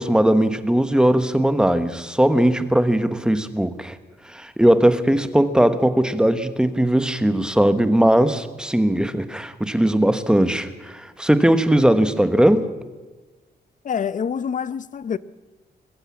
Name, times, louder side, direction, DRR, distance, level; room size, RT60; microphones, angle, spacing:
voice 1, 0.0-4.0 4.3-12.7, right 1 dB, 5° right, 1.1 m, -19 dB
voice 2, 13.8-15.2, left 7 dB, 45° left, 0.7 m, -26 dB
21.5 x 14.5 x 8.5 m
wide cardioid pair, 130°, 18 cm